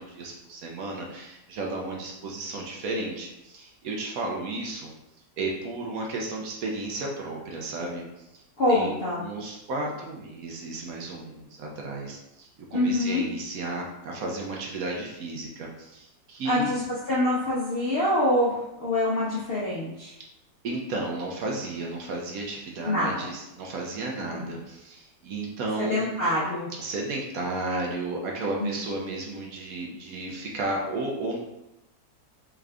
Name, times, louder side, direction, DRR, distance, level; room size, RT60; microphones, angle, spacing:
voice 1, 0.0-4.9 5.4-8.1 8.3-8.4 8.7-16.8 20.6-26.1 26.8-31.4, right 2 dB, 65° right, -1 dB, 0.9 m, -33 dB
voice 2, 8.6-9.2 12.7-13.3 16.4-20.1 22.8-23.2 24.3-24.5 25.8-26.7 28.6-28.8, left 1 dB, 65° left, -8 dB, 0.5 m, -25 dB
3.6 x 2.4 x 3.3 m, 0.90 s
omnidirectional pair, 1.9 m